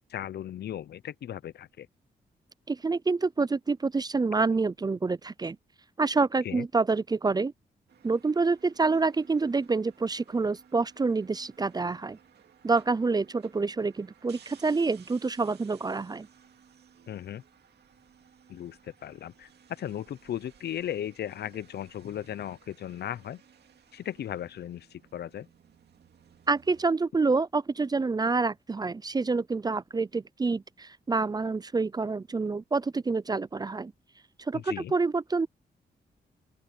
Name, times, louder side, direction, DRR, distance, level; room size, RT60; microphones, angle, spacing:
voice 1, 0.1-1.9 6.4-6.7 17.1-17.4 18.5-23.4 23.9-25.5 34.5-34.9, left 11 dB, 75° left, 0.6 m, -37 dB
voice 2, 2.7-5.6 6.0-7.5 8.0-12.2 12.6-16.3 26.5-33.9 34.4-35.5, right 4 dB, 25° right, 0.4 m, -27 dB
sound 1, 7.9-26.9, right 8 dB, 75° right, 2.3 m, -58 dB
open air
cardioid pair, 70°, 17 cm